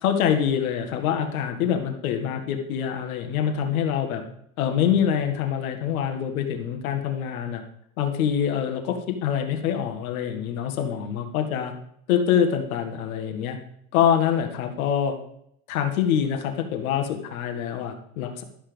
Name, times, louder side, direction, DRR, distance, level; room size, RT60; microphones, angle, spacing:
voice 1, 0.0-4.2 4.6-7.6 8.0-11.7 12.1-13.6 13.9-15.1 15.7-18.4, left 8 dB, 75° left, 5 dB, 1.7 m, -25 dB
12.0 x 5.9 x 5.1 m, 0.72 s
hypercardioid pair, 100°, 42 cm